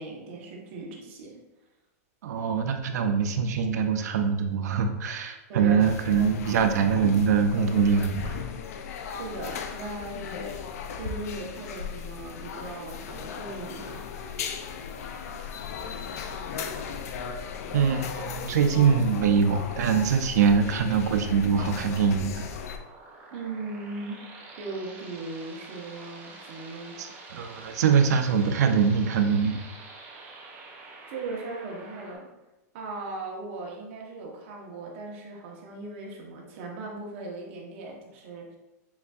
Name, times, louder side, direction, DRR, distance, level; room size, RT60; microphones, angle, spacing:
voice 1, 0.0-1.4 5.5-5.8 6.1-6.3 9.2-14.1 23.3-24.3 24.6-27.0 31.1-32.3 32.7-38.6, right 2 dB, 50° right, -1 dB, 1.0 m, -38 dB
voice 2, 2.2-8.4 17.7-22.4 27.0-29.6, right 6 dB, 80° right, 6 dB, 0.5 m, -23 dB
sound 1, 5.8-22.8, left 6 dB, 65° left, 0.4 m, -37 dB
sound 2, 22.1-32.2, right 3 dB, 15° right, 0.6 m, -47 dB
6.9 x 2.6 x 2.4 m, 1.0 s
supercardioid pair, 165°, 9 cm